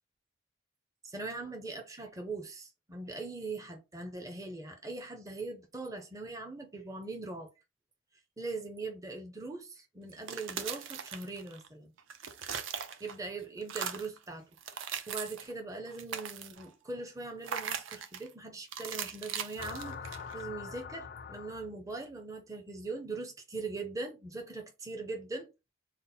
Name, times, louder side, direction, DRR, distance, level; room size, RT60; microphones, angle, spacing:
voice 1, 1.0-7.5 8.4-11.9 13.0-14.4 14.7-25.5, right 3 dB, 15° right, 0.6 m, -41 dB
sound 1, 10.1-11.7 12.0-13.3 13.6-14.2 14.6-15.5 15.9-16.7 17.4-18.3 18.7-20.4, right 7 dB, 70° right, 0.5 m, -39 dB
sound 2, 19.6-22.0, left 6 dB, 45° left, 0.4 m, -43 dB
4.1 x 2.1 x 4.0 m
head